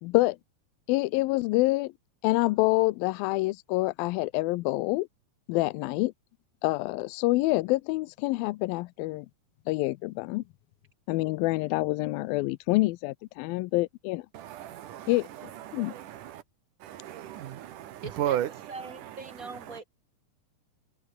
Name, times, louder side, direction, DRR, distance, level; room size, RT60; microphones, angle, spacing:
voice 1, 0.0-0.4 0.9-1.9 2.2-5.1 5.5-6.1 6.6-9.3 9.7-10.4 11.1-14.3 15.1-15.3 15.7-15.9, left 20 dB, 85° left, 2.4 m, -26 dB
voice 2, 14.3-15.1 15.7-16.4 16.8-18.5, right 12 dB, 70° right, 2.7 m, -34 dB
voice 3, 18.0-18.4 18.7-19.9, right 3 dB, 20° right, 5.8 m, -41 dB
omnidirectional pair, 4.1 m